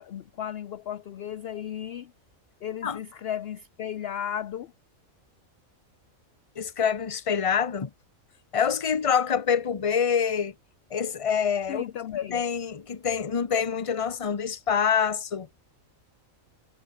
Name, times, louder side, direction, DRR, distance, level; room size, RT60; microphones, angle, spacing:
voice 1, 0.0-2.1 2.6-4.7 11.7-12.4, left 10 dB, 60° left, 0.7 m, -34 dB
voice 2, 6.6-7.9 8.5-10.5 10.9-11.9 12.3-15.5, left 7 dB, 30° left, 0.9 m, -26 dB
omnidirectional pair, 1.4 m